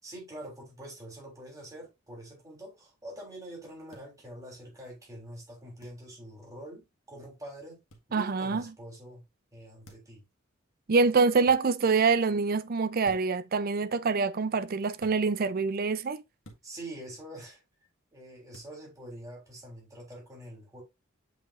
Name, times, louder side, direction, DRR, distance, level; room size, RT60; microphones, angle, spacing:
voice 1, 0.0-7.8 8.1-10.2 16.6-17.6 18.1-20.8, right 1 dB, 15° right, 3.6 m, -45 dB
sound 1, 3.9-4.1 5.8-6.0 7.9-8.1 9.8-10.2 11.4-11.6 13.0-13.4 15.0-15.2 16.4-16.7 18.5-18.7, equal, 70° left, 1.8 m, -51 dB
voice 2, 8.1-8.6 10.9-16.2, right 4 dB, 45° right, 0.5 m, -25 dB
8.0 x 4.8 x 2.5 m
head